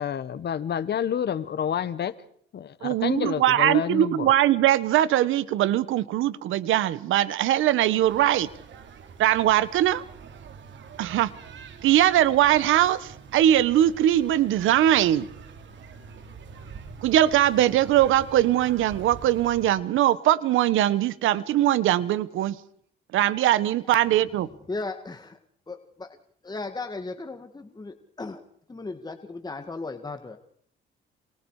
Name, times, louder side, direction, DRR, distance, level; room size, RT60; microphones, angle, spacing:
voice 1, 0.0-2.1 2.5-4.3, left 8 dB, 60° left, 15 dB, 1.4 m, -29 dB
voice 2, 2.8-8.5 9.2-10.0 11.0-11.3 11.8-15.3 17.0-22.6 23.1-24.5, right 12 dB, 85° right, 17 dB, 1.3 m, -21 dB
sound 1, 8.0-19.7, right 6 dB, 70° right, 3.2 m, -45 dB
voice 3, 24.7-25.4 25.7-26.2 26.4-30.4, left 3 dB, 20° left, 7 dB, 1.9 m, -36 dB
28.0 x 27.5 x 4.9 m, 0.65 s
cardioid pair, 90°, 20 cm